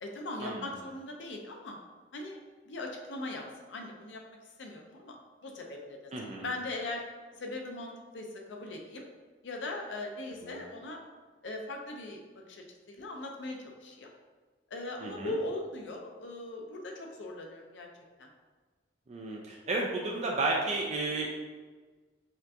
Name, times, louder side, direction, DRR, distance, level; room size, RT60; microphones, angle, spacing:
voice 1, 0.0-1.8 2.1-2.4 2.7-4.2 4.6-5.2 5.4-6.1 6.4-7.0 7.4-9.1 9.4-11.0 11.4-14.1 14.7-17.9 18.2-18.3, left 2 dB, 90° left, 2 dB, 0.6 m, -39 dB
voice 2, 6.1-6.5 10.4-10.6 15.0-15.4 19.1-21.3, right 2 dB, 40° right, -1 dB, 0.4 m, -32 dB
4.3 x 2.4 x 2.7 m, 1.4 s
head